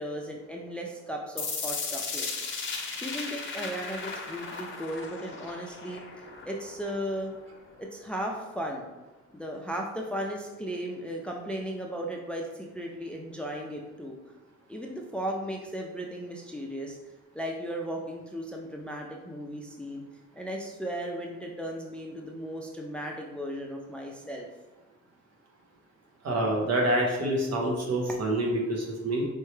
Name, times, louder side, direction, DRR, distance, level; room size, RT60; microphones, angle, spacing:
voice 1, 0.0-2.5 3.0-6.0 6.5-7.3 7.8-8.9 9.3-14.2 14.7-17.0 17.3-20.0 20.3-24.5, equal, 5° left, 1 dB, 0.5 m, -36 dB
sound 1, 1.4-7.4, left 4 dB, 40° left, 0.9 m, -36 dB
voice 2, 26.2-29.3, right 1 dB, 55° right, 0 dB, 1.2 m, -27 dB
4.6 x 3.2 x 3.2 m, 1.1 s
cardioid pair, 90°, 30 cm